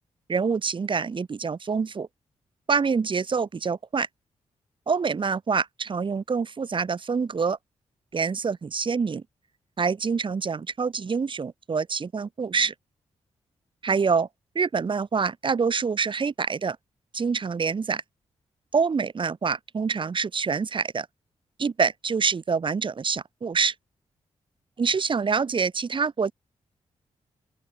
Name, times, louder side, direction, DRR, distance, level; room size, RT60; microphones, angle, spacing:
voice 1, 0.3-2.1 2.7-4.1 4.9-7.6 8.1-9.2 9.8-12.7 13.8-14.3 14.6-16.8 17.1-18.0 18.7-21.1 21.6-23.7 24.8-26.3, right 5 dB, 45° right, 1.8 m, -26 dB
open air
cardioid pair, 80°, 12 cm